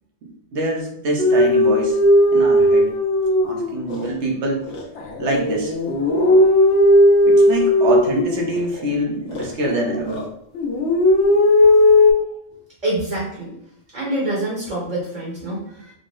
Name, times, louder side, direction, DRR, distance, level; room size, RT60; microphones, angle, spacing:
voice 1, 0.2-2.0 2.3-2.9 3.4-4.7 5.2-5.7 7.2-10.2 15.8-15.9, right 1 dB, 80° right, 0 dB, 1.2 m, -25 dB
sound 1, 1.2-4.1 4.6-8.9 9.3-10.3 10.6-12.1, left 1 dB, 85° left, 1.0 m, -16 dB
voice 2, 12.8-13.5 13.9-15.6, right 1 dB, 40° right, -5 dB, 1.0 m, -25 dB
3.9 x 2.0 x 3.7 m, 0.75 s
omnidirectional pair, 1.2 m